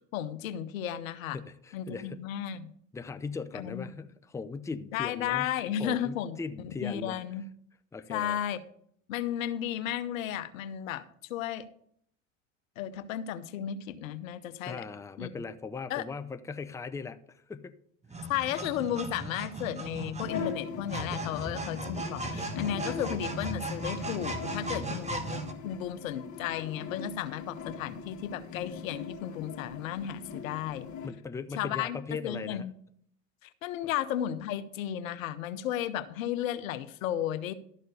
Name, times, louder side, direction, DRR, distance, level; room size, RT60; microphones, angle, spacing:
voice 1, 0.1-1.4 1.7-2.6 3.5-3.9 4.9-7.4 8.1-8.6 9.1-11.0 11.3-11.7 12.8-14.8 15.2-15.3 15.9-16.0 18.3-30.9 31.6-32.7 33.4-37.5, left 10 dB, 85° left, 13 dB, 0.8 m, -34 dB
voice 2, 1.3-2.3 2.9-5.5 5.8-7.2 7.9-8.4 14.6-17.7 21.3-21.5 24.7-25.1 31.0-32.7, left 4 dB, 10° left, 10 dB, 0.5 m, -39 dB
sound 1, 18.0-25.5, right 2 dB, 15° right, 1.3 m, -37 dB
sound 2, 20.2-31.1, left 6 dB, 45° left, 2.0 m, -41 dB
12.5 x 4.3 x 6.6 m, 0.67 s
hypercardioid pair, 80°, 39 cm